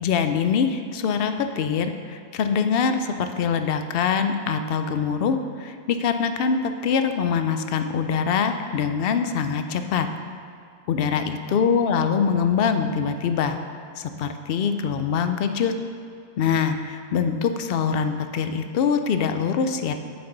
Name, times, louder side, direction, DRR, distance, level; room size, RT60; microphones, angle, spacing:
voice 1, 0.0-10.1 10.9-13.6 14.0-15.7 16.4-19.9, left 6 dB, 70° left, 8 dB, 0.8 m, -24 dB
9.0 x 6.8 x 3.9 m, 2.3 s
omnidirectional pair, 1.1 m